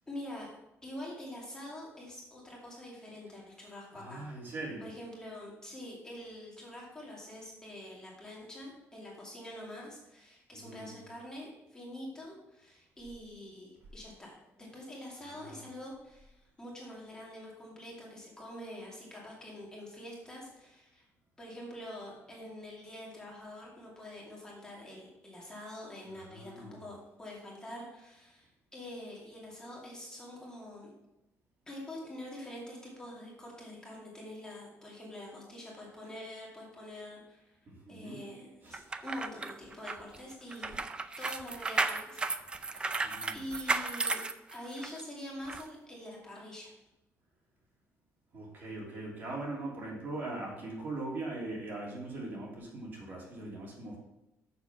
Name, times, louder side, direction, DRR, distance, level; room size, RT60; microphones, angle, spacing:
voice 1, 0.1-0.5 0.8-4.3 4.8-21.0 21.4-30.9 31.7-37.6 37.9-40.7 41.2-42.2 42.5-44.2 44.5-46.7, left 1 dB, 15° left, -3 dB, 2.4 m, -45 dB
voice 2, 3.9-4.9 10.5-11.0 15.2-15.7 26.1-26.8 37.7-38.3 38.6-38.8 43.0-43.5 48.3-54.0, right 2 dB, 40° right, -3 dB, 2.9 m, -41 dB
sound 1, 38.7-45.0 45.5-45.6, right 3 dB, 20° right, 0.4 m, -34 dB
6.9 x 6.8 x 5.8 m, 0.93 s
cardioid pair, 155°, 5 cm